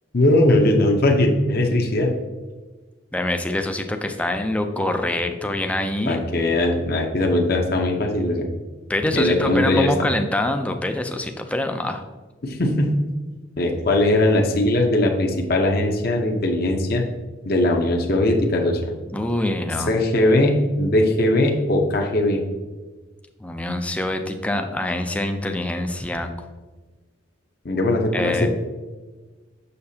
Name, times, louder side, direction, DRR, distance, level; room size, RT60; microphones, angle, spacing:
voice 1, 0.1-2.1 6.1-8.5 9.1-10.1 12.4-13.0 13.6-17.0 17.5-18.9 19.9-22.4 27.6-28.5, left 1 dB, 50° left, 2 dB, 0.8 m, -20 dB
voice 2, 3.1-6.4 8.9-12.0 19.1-19.9 23.4-26.3 28.1-28.5, left 1 dB, 5° left, 5 dB, 0.4 m, -25 dB
6.8 x 6.7 x 2.8 m, 1.3 s
head